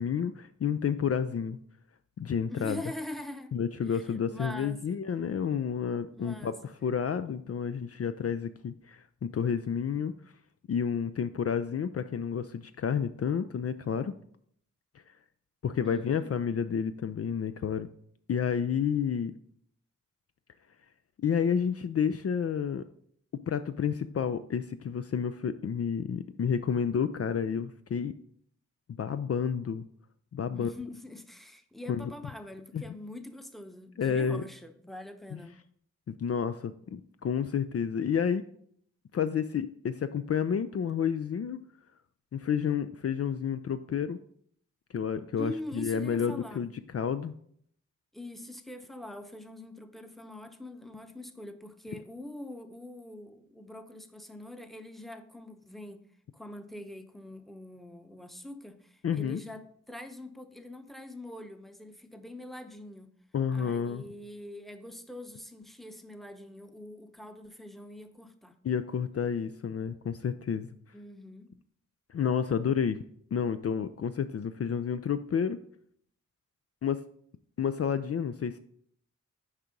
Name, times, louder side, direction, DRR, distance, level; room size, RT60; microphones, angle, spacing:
voice 1, 0.0-1.6 2.2-2.8 3.5-6.5 6.8-10.1 10.7-14.1 15.6-17.9 18.3-19.3 21.2-22.8 23.5-28.1 29.0-29.8 30.3-30.7 31.9-32.1 32.7-32.8 34.0-34.4 35.3-35.4 36.1-38.4 39.1-41.6 42.3-44.2 44.9-47.3 59.0-59.4 63.3-64.0 68.6-70.7 72.1-73.0 73.3-75.6 76.8-77.0 77.6-78.6, left 7 dB, 50° left, 10 dB, 0.4 m, -30 dB
voice 2, 2.5-3.5 3.9-5.0 6.1-6.6 15.8-16.4 30.5-35.6 45.4-46.7 48.1-56.0 56.3-63.1 63.5-68.5 70.9-71.5, left 1 dB, ahead, 7 dB, 0.9 m, -44 dB
6.6 x 4.7 x 5.2 m, 0.64 s
cardioid pair, 50°, 30 cm